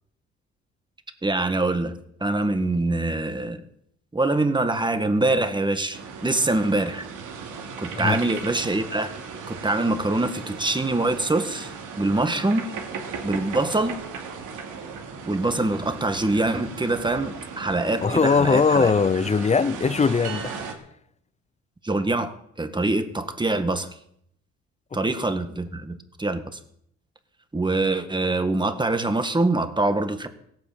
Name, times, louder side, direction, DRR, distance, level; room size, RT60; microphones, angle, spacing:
voice 1, 1.2-3.6 4.1-7.1 7.8-9.1 9.5-12.7 13.2-14.0 15.3-18.9 21.8-23.9 24.9-26.6 27.5-30.3, right 2 dB, 15° right, 1.7 m, -24 dB
sound 1, 5.9-20.7, right 5 dB, 85° right, 2.7 m, -37 dB
voice 2, 18.0-20.5, left 5 dB, 25° left, 0.5 m, -20 dB
16.5 x 9.2 x 7.6 m
cardioid pair, 90°, 30 cm